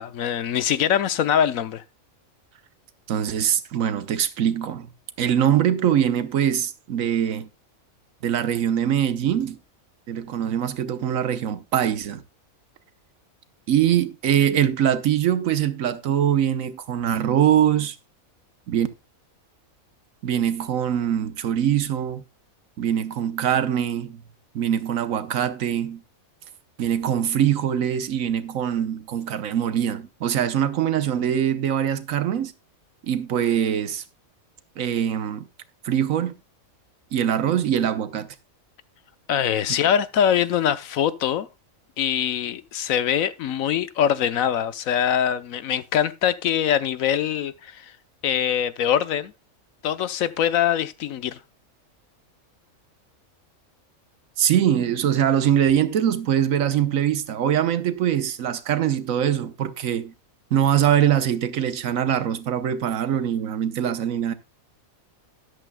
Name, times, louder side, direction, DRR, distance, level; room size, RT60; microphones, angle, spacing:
voice 1, 0.0-1.8 39.3-41.5 42.0-47.9 48.2-49.3 49.8-51.4, left 9 dB, 75° left, 1.2 m, -23 dB
voice 2, 3.1-4.9 5.2-7.5 8.2-9.6 10.1-12.2 13.7-18.0 18.7-18.9 20.2-22.2 22.8-24.2 24.5-26.0 26.8-32.5 33.1-34.0 34.8-35.4 35.8-36.3 37.1-38.3 54.4-60.1 60.5-64.3, right 10 dB, 75° right, 1.2 m, -23 dB
13.0 x 11.0 x 2.2 m
omnidirectional pair, 1.5 m